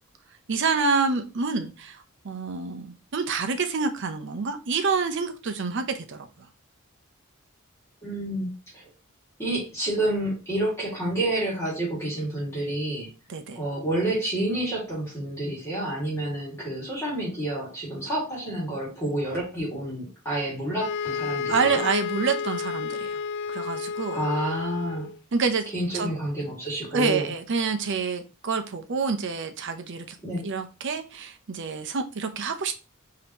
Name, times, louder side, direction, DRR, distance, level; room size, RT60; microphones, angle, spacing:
voice 1, 0.5-6.5 13.3-13.6 21.5-23.2 23.5-24.2 25.3-25.6 25.9-26.1 26.9-30.2 30.4-32.7, right 4 dB, 55° right, 7 dB, 0.6 m, -27 dB
voice 2, 8.0-8.8 9.4-13.1 13.6-21.8 24.1-25.1 25.7-27.3 30.2-30.4, right 1 dB, 15° left, -5 dB, 2.1 m, -29 dB
sound 1, 20.8-25.2, left 5 dB, 55° left, 0.3 m, -31 dB
5.2 x 2.8 x 2.9 m, 0.31 s
head